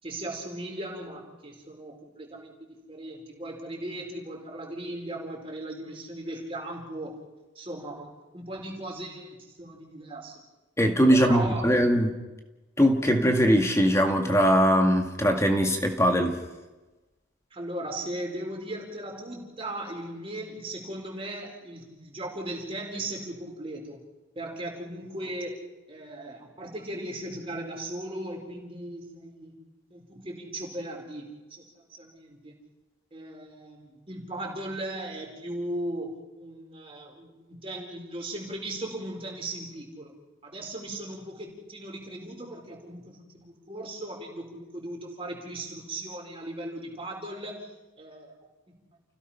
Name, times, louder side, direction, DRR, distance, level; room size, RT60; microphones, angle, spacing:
voice 1, 0.0-7.1 7.5-10.4 11.2-11.7 17.5-24.0 24.3-29.5 29.9-31.6 31.9-32.5 33.1-40.1 40.4-47.7 48.0-48.3 48.7-48.8, right 1 dB, 30° right, -1 dB, 4.6 m, -37 dB
voice 2, 10.8-12.1 12.8-16.4, equal, 15° left, 4 dB, 1.9 m, -21 dB
30.0 x 16.5 x 5.8 m, 1.1 s
head